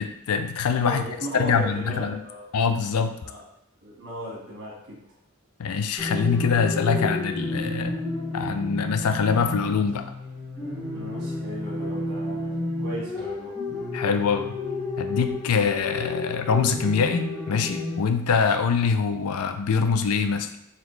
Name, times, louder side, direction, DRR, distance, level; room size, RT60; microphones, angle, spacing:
voice 1, 0.0-1.0 1.3-2.2 2.5-3.2 5.6-8.0 8.3-10.0 13.9-14.5 15.0-20.5, left 5 dB, 85° left, 8 dB, 0.4 m, -24 dB
voice 2, 0.8-2.4 3.2-3.4 3.8-5.0 10.9-13.5, equal, 55° right, -4 dB, 1.5 m, -37 dB
sound 1, 6.0-18.0, left 2 dB, 20° left, 1.5 m, -31 dB
4.0 x 3.0 x 3.1 m, 0.79 s
head